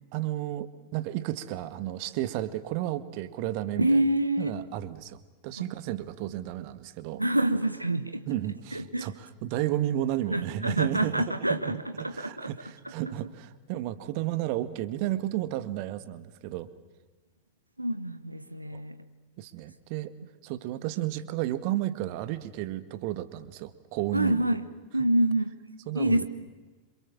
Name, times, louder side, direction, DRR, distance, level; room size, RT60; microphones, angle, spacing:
voice 1, 0.1-4.0 4.4-7.2 8.3-11.2 11.5-11.8 12.1-16.7 18.7-18.8 19.4-20.1 20.4-24.4 25.9-26.3, right 14 dB, 45° right, 12 dB, 1.7 m, -32 dB
voice 2, 3.8-4.5 5.6-5.7 7.2-8.3 8.7-9.1 10.3-12.5 17.8-19.0 24.1-24.7 24.9-25.5 25.9-26.3, right 1 dB, 85° right, 10 dB, 1.2 m, -27 dB
27.5 x 27.0 x 7.4 m, 1.3 s
figure-of-eight pair, 90°, 0 cm